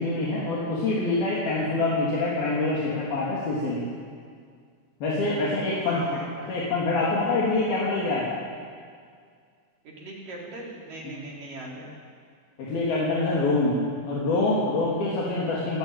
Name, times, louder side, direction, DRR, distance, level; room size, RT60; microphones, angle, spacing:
voice 1, 0.0-3.8 5.0-6.0 6.5-8.3 12.6-13.8 14.1-15.8, left 2 dB, 70° left, -5 dB, 5.1 m, -25 dB
voice 2, 5.8-6.3 9.8-11.9, right 2 dB, 60° right, -3 dB, 5.9 m, -40 dB
29.5 x 15.0 x 9.2 m, 2.1 s
omnidirectional pair, 4.4 m